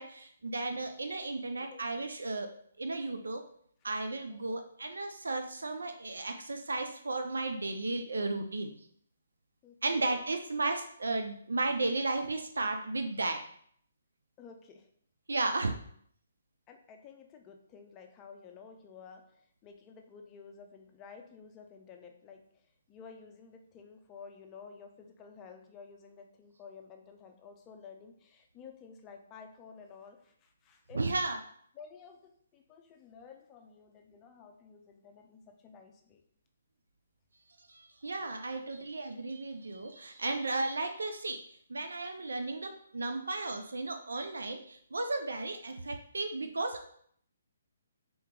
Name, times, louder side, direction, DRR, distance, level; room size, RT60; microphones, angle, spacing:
voice 1, 0.0-2.5 2.8-3.4 3.8-8.7 9.8-13.4 15.3-15.7 30.9-31.4 37.7-41.4 41.7-46.9, right 2 dB, 85° right, 6 dB, 0.4 m, -34 dB
voice 2, 9.6-10.1 14.4-14.9 16.7-19.2 19.6-22.4 22.9-31.0 31.7-36.2 38.2-38.6 40.1-40.2, left 6 dB, 20° left, 4 dB, 0.5 m, -52 dB
3.8 x 2.9 x 3.7 m, 0.64 s
hypercardioid pair, 145°, 0 cm